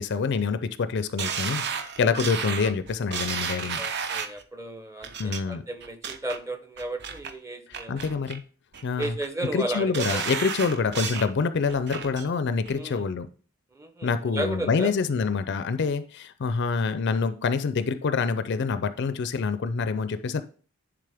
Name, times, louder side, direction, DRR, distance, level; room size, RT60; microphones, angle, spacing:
voice 1, 0.0-3.8 5.2-5.6 7.9-8.4 8.8-9.1 9.4-13.3 14.0-20.4, left 5 dB, 50° left, 0.4 m, -26 dB
sound 1, 1.2-4.4 5.0-5.4 5.8-6.4 6.8-7.3 7.7-8.4 8.7-9.3 9.7-11.3 11.7-12.3 12.7-12.8, right 6 dB, 50° right, 0.6 m, -32 dB
voice 2, 3.8-7.9 9.0-10.2 12.7-13.0 13.8-14.9, right 1 dB, 15° right, 0.6 m, -34 dB
10.0 x 3.7 x 3.4 m
head